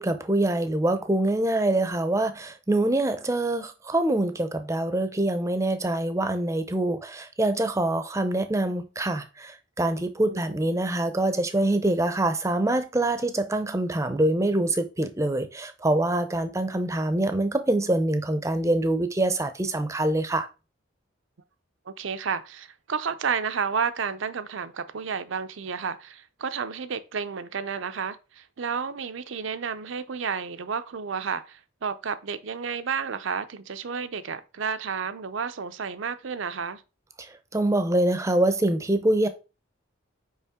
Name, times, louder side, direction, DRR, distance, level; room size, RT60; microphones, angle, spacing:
voice 1, 0.0-20.5 37.2-39.3, right 1 dB, 15° right, 0.6 m, -25 dB
voice 2, 21.9-36.8, right 6 dB, 70° right, 0.6 m, -31 dB
5.5 x 5.0 x 3.6 m
head